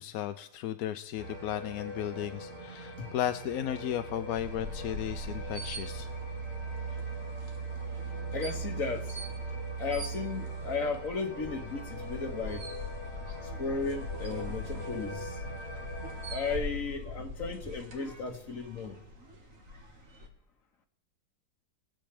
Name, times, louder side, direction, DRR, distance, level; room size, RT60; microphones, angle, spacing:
voice 1, 0.0-6.1, left 11 dB, 70° left, 1.0 m, -35 dB
sound 1, 1.2-16.6, right 3 dB, 15° left, 3.1 m, -40 dB
sound 2, 4.3-20.3, left 2 dB, 55° right, 2.1 m, -43 dB
voice 2, 8.3-9.2 9.8-12.7 13.6-15.4 16.3-19.0, left 4 dB, 55° left, 1.9 m, -35 dB
22.5 x 7.9 x 3.3 m
omnidirectional pair, 1.8 m